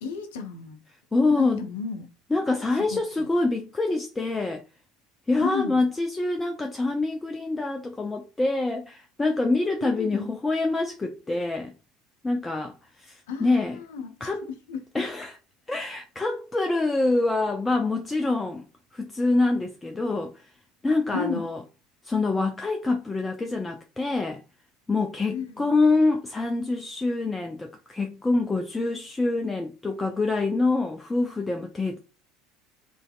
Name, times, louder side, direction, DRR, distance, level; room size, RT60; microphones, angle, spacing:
voice 1, 0.0-0.8 1.3-2.1 2.8-3.3 5.4-5.8 9.8-10.3 13.3-15.0 21.1-21.5 25.3-25.7, left 5 dB, 65° left, 0.6 m, -33 dB
voice 2, 1.1-1.6 2.3-4.6 5.3-11.7 12.2-13.8 14.2-14.5 14.9-15.4 15.7-18.6 18.9-20.4 20.8-21.6 22.0-24.4 24.9-32.0, left 3 dB, 15° left, 0.4 m, -26 dB
3.1 x 2.6 x 2.3 m
figure-of-eight pair, 65°, 0 cm